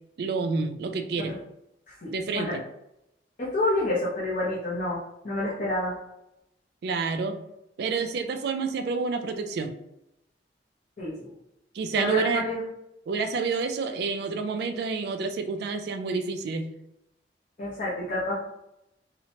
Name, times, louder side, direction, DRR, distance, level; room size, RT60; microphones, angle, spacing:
voice 1, 0.2-1.3 2.1-2.6 6.8-7.4 7.8-9.7 11.7-12.5 13.1-16.7, right 4 dB, 60° right, 7 dB, 0.3 m, -28 dB
voice 2, 1.9-2.6 3.4-6.0 11.0-11.3 11.9-12.6 17.6-18.3, left 2 dB, 45° left, -9 dB, 0.7 m, -29 dB
2.8 x 2.1 x 2.8 m, 0.83 s
head